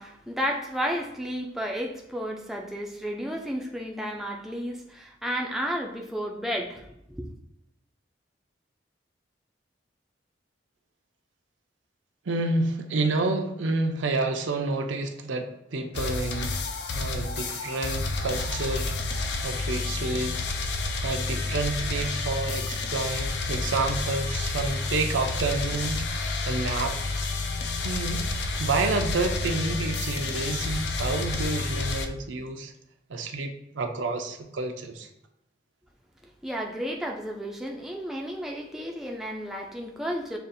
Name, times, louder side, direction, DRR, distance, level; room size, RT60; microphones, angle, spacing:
voice 1, 0.0-7.3 36.4-40.4, equal, ahead, 0 dB, 0.4 m, -32 dB
voice 2, 12.3-16.5 16.9-18.9 19.4-20.4 21.0-26.9 27.2-27.3 27.8-28.2 28.6-32.7 33.1-35.1, right 3 dB, 85° right, 4 dB, 0.5 m, -29 dB
sound 1, 15.9-32.1, left 3 dB, 60° left, 0.4 m, -30 dB
6.7 x 2.4 x 2.6 m, 0.81 s
head